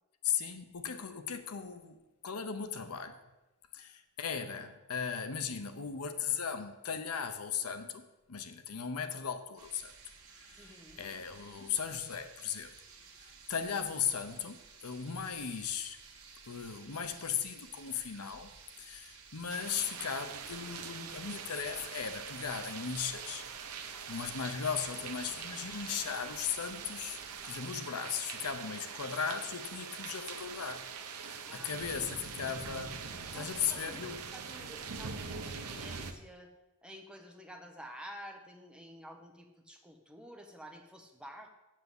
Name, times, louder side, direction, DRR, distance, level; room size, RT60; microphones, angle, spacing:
voice 1, 0.2-2.0 2.2-3.2 3.7-9.9 10.3-12.7 13.2-16.0 16.5-23.4 23.7-30.9 31.2-33.0 33.3-34.3, left 7 dB, 80° left, 9 dB, 0.8 m, -37 dB
sound 1, 9.6-27.5, right 5 dB, 70° right, 1.6 m, -55 dB
voice 2, 10.6-11.1 31.4-31.7 32.4-32.6 33.3-36.5 36.8-41.5, equal, 5° right, 3 dB, 1.0 m, -50 dB
sound 2, 19.5-36.1, right 6 dB, 85° right, 0.9 m, -43 dB
7.6 x 6.7 x 7.9 m, 1.0 s
head